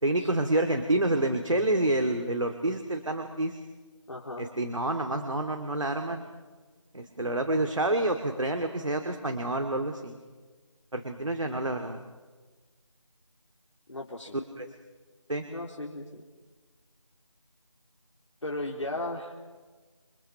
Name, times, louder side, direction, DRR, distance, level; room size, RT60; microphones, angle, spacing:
voice 1, 0.0-3.5 4.4-6.2 6.9-10.2 10.9-12.0 14.6-14.7 15.3-15.4, right 1 dB, 70° right, 4 dB, 2.4 m, -28 dB
voice 2, 4.1-4.5 13.9-14.4 15.5-16.2 18.4-19.4, left 2 dB, 65° left, -2 dB, 3.8 m, -36 dB
29.0 x 25.5 x 5.9 m, 1.3 s
figure-of-eight pair, 175°, 17 cm